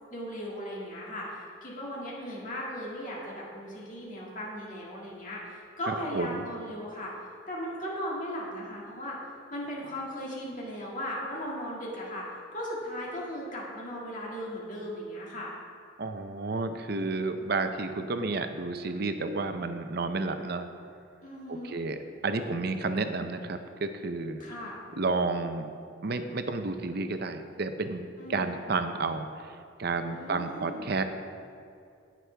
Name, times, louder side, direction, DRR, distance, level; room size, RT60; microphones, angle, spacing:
voice 1, 0.1-7.1 7.5-9.2 9.5-12.3 12.5-15.5 21.2-21.8 24.4-24.8 28.2-28.6 30.1-30.9, equal, 40° left, -4 dB, 2.1 m, -37 dB
voice 2, 5.9-6.4 16.0-20.7 21.5-22.0 22.2-24.4 25.0-25.7 26.0-31.0, right 3 dB, 50° right, 8 dB, 0.6 m, -31 dB
17.5 x 6.2 x 3.4 m, 2.5 s
head